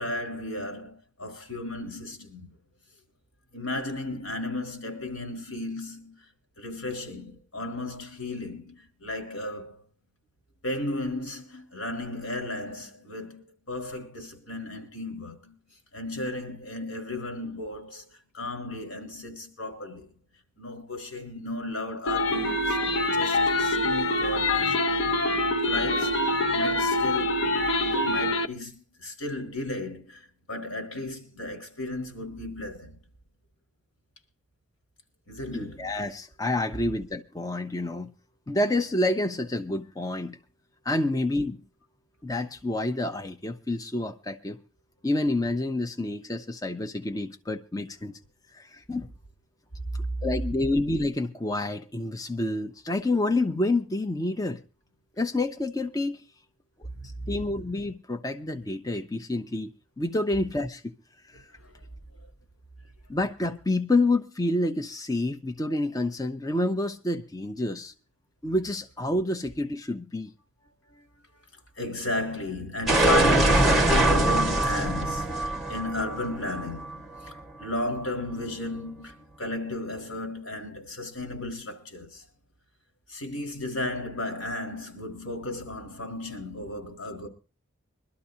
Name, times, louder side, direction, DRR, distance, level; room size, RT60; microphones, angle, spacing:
voice 1, 0.0-2.5 3.5-6.2 6.6-9.8 10.6-15.6 15.9-20.1 20.6-22.8 23.1-24.9 25.7-33.0 35.3-36.0 50.0-50.1 56.9-57.6 61.5-61.8 62.2-62.3 70.9-71.1 71.5-82.3 83.1-87.3, left 1 dB, 90° left, 4.5 m, -34 dB
sound 1, 22.1-28.5, left 2 dB, 65° left, 0.7 m, -25 dB
voice 2, 35.5-38.1 38.5-40.4 40.8-41.6 42.2-44.6 45.0-48.2 48.5-49.1 50.2-54.6 55.2-56.2 57.3-59.7 60.0-60.9 61.3-61.4 63.1-67.9 68.4-70.3, left 2 dB, 15° left, 0.6 m, -28 dB
sound 2, 72.9-77.6, right 1 dB, ahead, 1.5 m, -23 dB
23.0 x 12.5 x 2.7 m
head